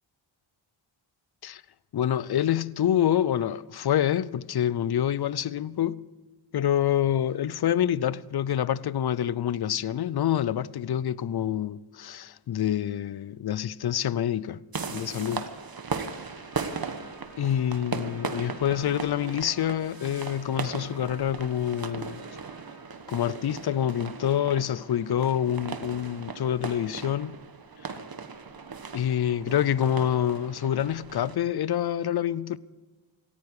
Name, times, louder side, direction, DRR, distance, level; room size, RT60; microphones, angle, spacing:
voice 1, 1.9-6.0 6.5-14.6 14.9-15.5 17.4-22.2 23.1-27.4 28.9-32.6, left 10 dB, 55° left, 0.6 m, -27 dB
sound 1, 14.7-31.4, right 5 dB, 45° right, 1.4 m, -37 dB
Trumpet, 16.4-22.9, equal, 5° right, 6.7 m, -54 dB
18.0 x 15.0 x 4.9 m
cardioid pair, 70°, 48 cm